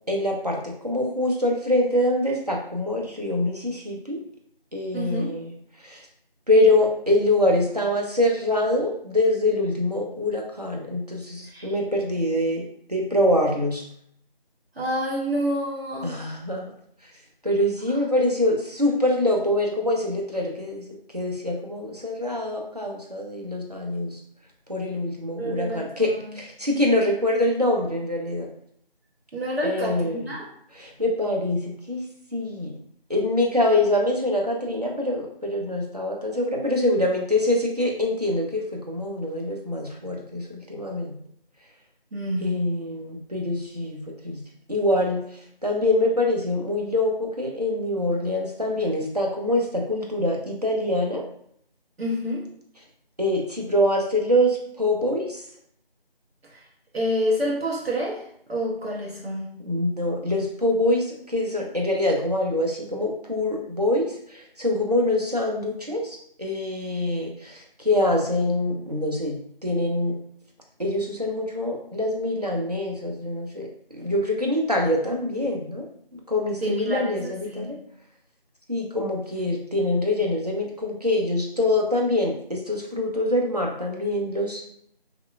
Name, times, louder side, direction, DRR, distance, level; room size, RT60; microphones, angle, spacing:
voice 1, 0.1-4.2 4.7-5.5 5.8-6.1 6.5-13.8 16.0-16.7 17.4-24.2 24.7-28.5 29.6-30.3 30.7-32.0 32.3-32.7 33.1-41.2 42.4-44.4 44.7-51.2 53.2-55.4 59.6-69.4 69.6-70.2 70.8-73.7 73.9-75.9 76.1-77.8 78.7-84.6, left 1 dB, 45° right, -1 dB, 0.5 m, -24 dB
voice 2, 4.9-5.4 11.5-11.7 14.8-16.3 25.4-25.9 29.3-30.5 42.1-42.8 52.0-52.5 56.5-56.6 56.9-59.5 76.6-77.7, equal, 85° right, -3 dB, 0.9 m, -28 dB
2.8 x 2.1 x 2.4 m, 0.67 s
figure-of-eight pair, 175°, 30 cm